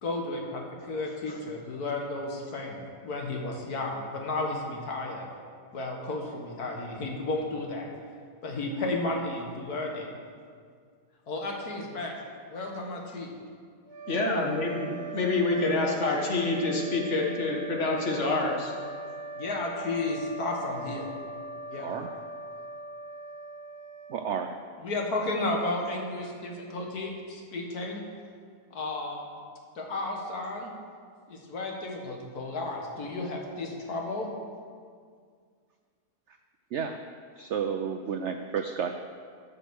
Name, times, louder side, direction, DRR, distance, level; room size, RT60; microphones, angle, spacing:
voice 1, 0.0-5.3 5.7-7.9 8.4-10.1 11.3-12.2 12.5-13.3 19.4-21.1 21.7-22.0 24.8-28.0 28.7-29.3 29.8-30.7 31.3-34.3, left 2 dB, 70° left, 0 dB, 2.0 m, -33 dB
sound 1, 13.8-24.8, right 3 dB, 45° right, 2.0 m, -41 dB
voice 2, 14.1-18.7, left 3 dB, 45° left, 0 dB, 1.7 m, -27 dB
voice 3, 21.8-22.1 24.1-24.6 36.7-37.0 37.4-38.9, right 7 dB, 70° right, 6 dB, 0.6 m, -31 dB
12.5 x 6.1 x 6.3 m, 2.1 s
omnidirectional pair, 1.7 m